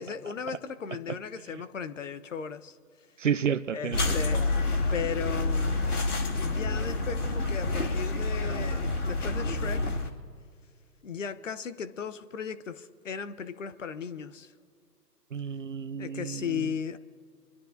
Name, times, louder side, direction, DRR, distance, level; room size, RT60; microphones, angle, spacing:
voice 1, 0.0-2.8 3.7-4.4 4.9-5.8 6.3-10.0 11.0-14.5 16.0-17.0, left 7 dB, 50° left, 0.9 m, -36 dB
voice 2, 3.2-4.1 15.3-16.7, right 7 dB, 50° right, 0.7 m, -31 dB
sound 1, 3.9-10.1, left 2 dB, 65° left, 2.5 m, -28 dB
26.0 x 12.0 x 2.6 m
figure-of-eight pair, 150°, 49 cm